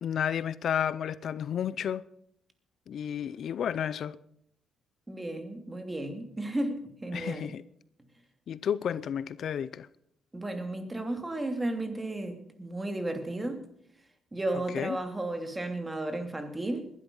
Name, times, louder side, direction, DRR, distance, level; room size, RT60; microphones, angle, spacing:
voice 1, 0.0-2.0 2.9-4.2 7.1-7.6 8.5-9.9 14.7-15.0, left 9 dB, 65° left, 0.5 m, -31 dB
voice 2, 5.1-7.5 10.3-13.6 14.3-16.9, right 1 dB, 15° right, 2.8 m, -34 dB
20.5 x 12.0 x 5.5 m
cardioid pair, 90°, 0 cm